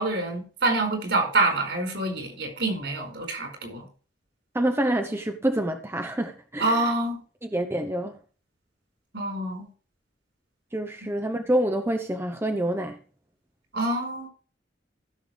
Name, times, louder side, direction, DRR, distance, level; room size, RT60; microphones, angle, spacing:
voice 1, 0.0-3.8 6.6-7.2 9.1-9.7 13.7-14.3, right 2 dB, 70° right, 4.8 m, -26 dB
voice 2, 4.5-6.9 7.4-8.2 10.7-13.0, right 1 dB, 15° right, 0.7 m, -27 dB
15.5 x 6.7 x 3.3 m
head